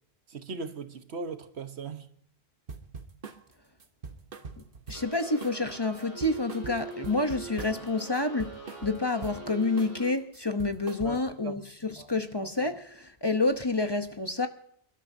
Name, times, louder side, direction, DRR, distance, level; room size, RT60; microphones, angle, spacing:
voice 1, 0.3-2.1 11.0-11.2 11.4-11.5 12.0-12.1, right 4 dB, 90° right, 1.4 m, -38 dB
sound 1, 2.7-3.4 3.8-5.1 5.4-5.7 6.0-7.9 8.1-9.4 9.8-10.0 10.3-11.4, right 5 dB, 55° right, 1.3 m, -42 dB
voice 2, 4.9-14.5, left 2 dB, 25° left, 0.8 m, -29 dB
sound 2, 4.9-10.1, right 2 dB, 30° right, 4.3 m, -43 dB
28.0 x 12.5 x 2.7 m
omnidirectional pair, 1.1 m